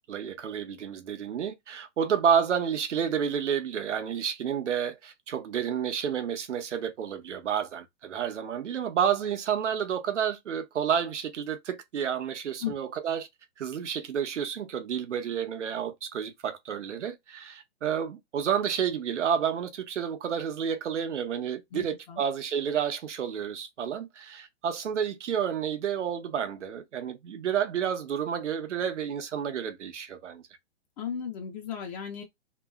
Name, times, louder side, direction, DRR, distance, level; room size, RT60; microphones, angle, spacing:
voice 1, 0.1-13.3 13.6-30.4, right 8 dB, 85° right, 0.8 m, -30 dB
voice 2, 21.7-22.2 31.0-32.2, left 8 dB, 35° left, 0.8 m, -35 dB
2.9 x 2.7 x 2.3 m
hypercardioid pair, 135°, 35 cm